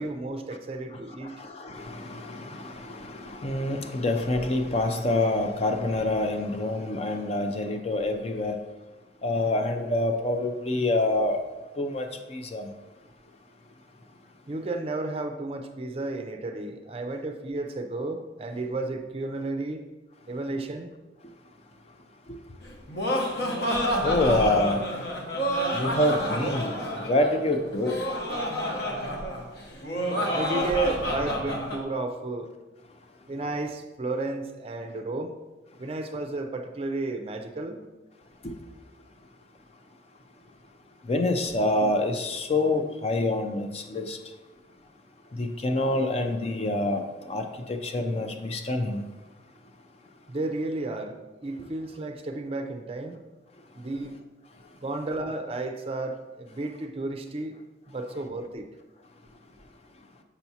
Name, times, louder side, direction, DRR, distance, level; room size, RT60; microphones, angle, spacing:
voice 1, 0.0-1.3 14.5-19.8 20.3-20.9 29.5-29.7 30.3-32.5 33.3-35.3 35.8-37.8 41.8-41.9 50.3-53.2 53.7-54.2 54.8-57.6 57.9-58.7, right 2 dB, 30° right, 5 dB, 0.4 m, -32 dB
voice 2, 1.4-8.6 9.2-11.4 11.8-12.7 24.0-24.8 25.7-26.7 27.1-28.0 41.1-44.2 45.4-47.0 47.3-49.0, left 2 dB, 35° left, 5 dB, 0.4 m, -26 dB
Laughter, 22.6-31.8, equal, 60° left, 0.9 m, -29 dB
7.0 x 5.8 x 2.8 m, 1.1 s
head